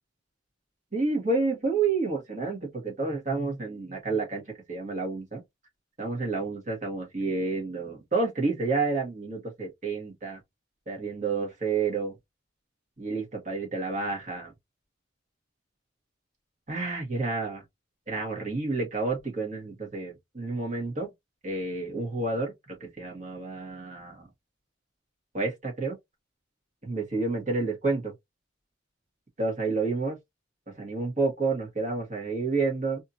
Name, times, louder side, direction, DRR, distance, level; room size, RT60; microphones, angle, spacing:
voice 1, 0.9-4.4 4.7-5.4 6.0-10.4 10.9-12.1 13.0-14.5 16.7-17.6 18.1-21.1 21.4-24.3 25.3-26.0 26.8-28.1 29.4-30.2 30.8-33.0, right 3 dB, 40° right, 1.5 m, -29 dB
3.5 x 2.8 x 2.6 m
head